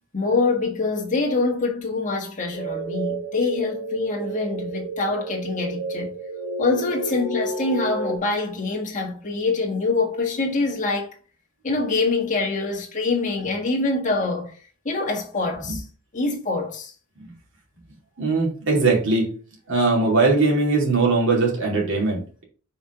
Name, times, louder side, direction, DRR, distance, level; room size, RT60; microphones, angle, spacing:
voice 1, 0.1-6.1 6.6-11.2 11.6-14.5 14.9-15.8 16.1-16.9, left 3 dB, 35° left, 1.9 m, -25 dB
sound 1, 2.5-8.2, right 3 dB, 25° right, 2.4 m, -31 dB
voice 2, 18.2-19.3 19.7-22.4, right 3 dB, 60° right, 2.7 m, -20 dB
5.6 x 4.5 x 5.0 m
head